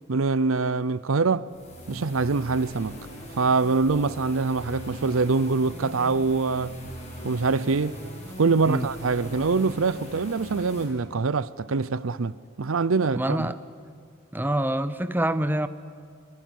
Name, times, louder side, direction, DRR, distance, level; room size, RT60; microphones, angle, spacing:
voice 1, 0.1-1.5 1.9-3.0 3.4-6.7 7.2-8.0 8.4-13.5, right 4 dB, 75° right, 0.6 m, -24 dB
sound 1, 1.5-10.8, equal, 35° left, 6.5 m, -40 dB
voice 2, 13.1-13.6 14.3-15.7, right 1 dB, 10° right, 0.7 m, -26 dB
24.0 x 23.0 x 9.4 m
head